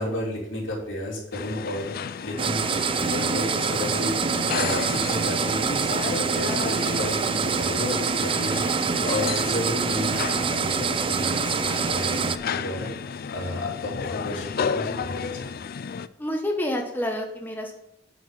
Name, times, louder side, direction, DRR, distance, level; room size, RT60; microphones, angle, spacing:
voice 1, 0.0-15.6, left 1 dB, 85° left, -4 dB, 3.6 m, -32 dB
sound 1, 1.3-16.1, left 6 dB, 50° left, 0.4 m, -33 dB
sound 2, 2.4-12.4, right 5 dB, 30° right, 0.4 m, -25 dB
voice 2, 16.2-17.7, left 1 dB, 10° left, 1 dB, 1.1 m, -28 dB
9.1 x 5.4 x 5.9 m, 0.76 s
head